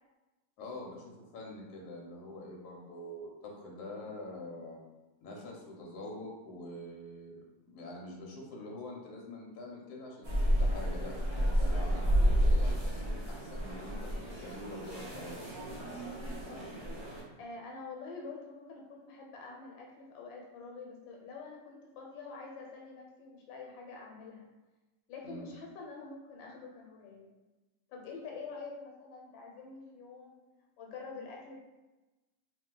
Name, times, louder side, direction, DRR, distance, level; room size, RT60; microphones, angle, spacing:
voice 1, 0.6-4.8 5.2-7.4 7.6-15.4 25.2-25.5, left 1 dB, 65° left, -2 dB, 1.3 m, -45 dB
sound 1, 10.2-17.2, equal, 45° right, 0.4 m, -31 dB
voice 2, 16.0-16.9 17.4-24.5 25.1-27.3 27.9-30.4 30.8-31.6, left 4 dB, 90° left, 0 dB, 1.4 m, -46 dB
3.0 x 2.8 x 3.8 m, 1.1 s
omnidirectional pair, 2.0 m